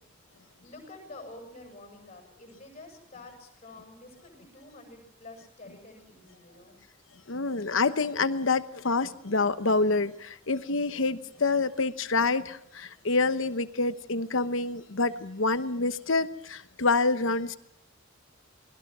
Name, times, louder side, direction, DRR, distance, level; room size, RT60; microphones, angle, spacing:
voice 1, 0.4-6.8, left 2 dB, 35° left, 3 dB, 7.5 m, -48 dB
voice 2, 7.3-17.6, left 3 dB, 65° left, 11 dB, 1.0 m, -27 dB
29.0 x 20.5 x 6.2 m, 0.73 s
head